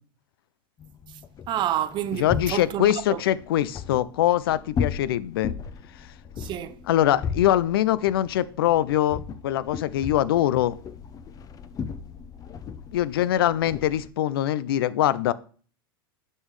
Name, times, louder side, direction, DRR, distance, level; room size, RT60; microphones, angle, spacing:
sound 1, 0.8-14.1, left 7 dB, 30° left, 0.6 m, -36 dB
voice 1, 1.5-3.2 6.4-6.8, right 11 dB, 40° right, 0.7 m, -29 dB
voice 2, 2.2-5.5 6.9-10.8 12.9-15.3, left 12 dB, 75° left, 0.5 m, -23 dB
9.4 x 5.5 x 3.2 m
hypercardioid pair, 95°, 12 cm